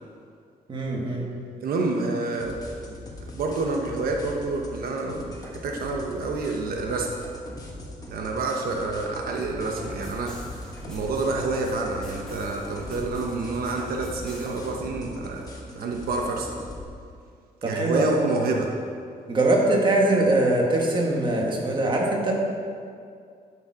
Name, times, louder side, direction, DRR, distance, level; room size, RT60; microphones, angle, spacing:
voice 1, 0.7-1.3 17.6-18.1 19.3-22.3, right 2 dB, 30° right, -1 dB, 1.7 m, -22 dB
voice 2, 1.6-2.6 2.9-7.1 8.1-10.4 10.9-16.6 17.6-18.7, right 3 dB, 80° right, 1 dB, 1.0 m, -28 dB
sound 1, 2.4-16.8, left 1 dB, 25° left, 1.6 m, -41 dB
sound 2, 9.7-14.7, equal, 5° left, 2.9 m, -42 dB
12.0 x 7.2 x 4.9 m, 2.3 s
wide cardioid pair, 145°, 15 cm